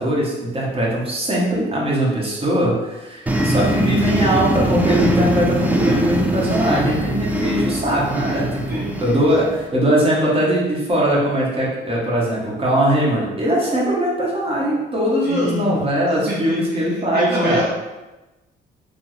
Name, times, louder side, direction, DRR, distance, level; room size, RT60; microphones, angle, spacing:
voice 1, 0.0-17.6, right 1 dB, 25° right, -5 dB, 1.0 m, -20 dB
sound 1, 3.3-9.7, right 1 dB, 10° right, 0.3 m, -21 dB
voice 2, 15.2-15.8 16.3-16.9 17.1-17.6, equal, 55° right, -6 dB, 0.8 m, -26 dB
3.4 x 2.1 x 3.0 m, 1.1 s
cardioid pair, 90°, 20 cm